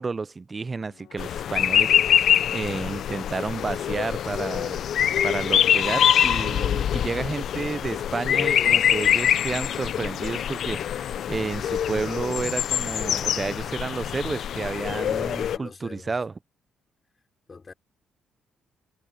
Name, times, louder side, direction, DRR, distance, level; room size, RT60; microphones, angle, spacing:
voice 1, 0.0-4.8 5.2-16.3, right 4 dB, 30° right, 0.5 m, -31 dB
sound 1, 0.8-13.1, left 12 dB, 85° left, 2.2 m, -48 dB
sound 2, 1.2-15.6, left 9 dB, 65° left, 0.4 m, -24 dB
voice 2, 15.0-16.2 17.5-17.7, left 4 dB, 35° left, 3.9 m, -43 dB
cardioid pair, 90°, 0 cm